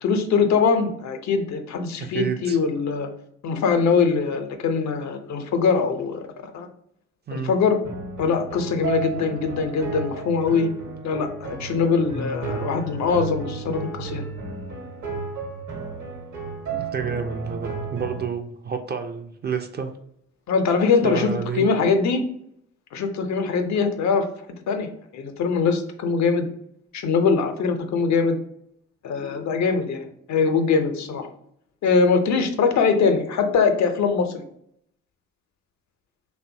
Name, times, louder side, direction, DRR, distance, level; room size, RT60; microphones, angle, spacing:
voice 1, 0.0-3.1 3.4-6.7 7.3-7.8 8.2-10.7 11.0-14.2 20.5-22.2 22.9-24.3 24.7-26.5 26.9-28.4 29.0-31.3 31.8-34.4, left 5 dB, 60° left, 6 dB, 0.5 m, -22 dB
voice 2, 2.0-2.6 7.3-7.5 16.7-19.9 21.0-21.7, right 6 dB, 30° right, 6 dB, 0.4 m, -29 dB
sound 1, 7.8-18.3, right 5 dB, 60° right, 1.1 m, -33 dB
2.6 x 2.2 x 2.6 m, 0.70 s
hypercardioid pair, 50°, 32 cm